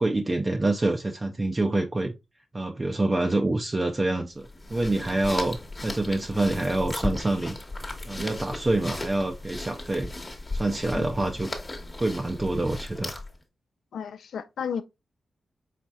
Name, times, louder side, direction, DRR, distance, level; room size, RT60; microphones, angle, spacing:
voice 1, 0.0-2.1 2.5-7.6 8.0-10.1 10.5-11.5 12.0-13.2, right 2 dB, 30° right, 0.5 m, -26 dB
sound 1, 4.4-13.4, left 2 dB, 25° left, 1.1 m, -36 dB
voice 2, 10.9-11.3 13.9-14.8, left 7 dB, 90° left, 0.3 m, -33 dB
4.1 x 4.0 x 2.3 m
cardioid pair, 80°, 0 cm